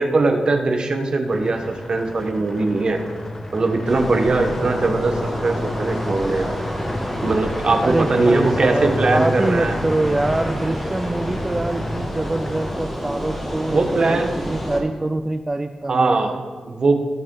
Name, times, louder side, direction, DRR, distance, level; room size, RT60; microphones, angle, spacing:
voice 1, 0.0-3.0 3.5-6.6 7.2-9.7 13.7-14.4 15.9-16.4 16.7-17.0, right 3 dB, 45° right, 5 dB, 1.2 m, -20 dB
sound 1, 1.3-12.7, left 1 dB, 25° left, 1.3 m, -32 dB
sound 2, 3.9-14.8, equal, 10° left, 2.0 m, -29 dB
voice 2, 7.8-16.4, right 2 dB, 20° right, 7 dB, 0.4 m, -25 dB
16.5 x 6.3 x 3.9 m, 1.4 s
wide cardioid pair, 125°, 2 cm